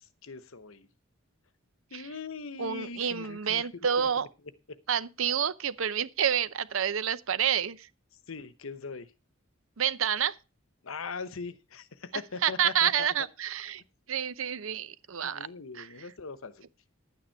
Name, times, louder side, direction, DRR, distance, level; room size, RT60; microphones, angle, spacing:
voice 1, 0.2-0.9 1.9-3.7 4.0-4.1 8.3-9.1 10.8-13.1 15.2-16.7, left 4 dB, 80° left, 1.0 m, -40 dB
voice 2, 2.6-4.3 4.9-7.9 9.8-10.3 12.4-13.8 14.1-15.5 15.7-15.9, right 8 dB, 75° right, 0.7 m, -28 dB
11.0 x 9.1 x 4.5 m
head